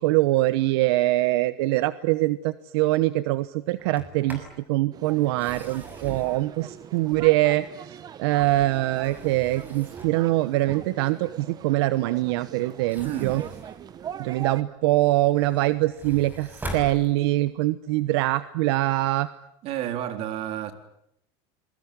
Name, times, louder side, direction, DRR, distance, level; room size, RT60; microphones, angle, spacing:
voice 1, 0.0-13.4 14.2-19.3, right 17 dB, 80° right, 1.0 m, -23 dB
Sliding door, 3.8-4.6 5.2-7.6 8.1-10.3 12.7-14.6 15.1-17.6, right 1 dB, 15° right, 5.9 m, -42 dB
sound 1, 4.9-14.6, right 9 dB, 30° right, 1.2 m, -41 dB
voice 2, 13.0-13.5 19.6-20.7, right 11 dB, 50° right, 3.8 m, -31 dB
27.5 x 22.0 x 9.7 m
supercardioid pair, 145°, 13 cm